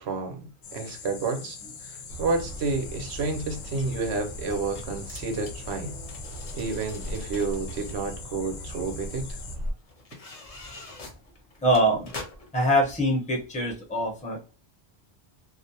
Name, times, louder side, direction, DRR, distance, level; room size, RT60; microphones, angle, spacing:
voice 1, 0.0-1.9 2.2-6.0 6.5-9.3, right 3 dB, 80° right, 0.9 m, -30 dB
sound 1, 0.6-9.6, left 6 dB, 80° left, 0.9 m, -43 dB
sound 2, 2.1-9.7, equal, 50° right, 0.8 m, -39 dB
sound 3, 3.1-3.2 4.5-8.0 9.0-9.1 9.9-12.6 13.1-13.2, left 2 dB, 40° left, 0.6 m, -44 dB
voice 2, 11.6-12.1 12.5-14.5, equal, 10° left, 0.7 m, -24 dB
2.4 x 2.1 x 2.6 m
omnidirectional pair, 1.1 m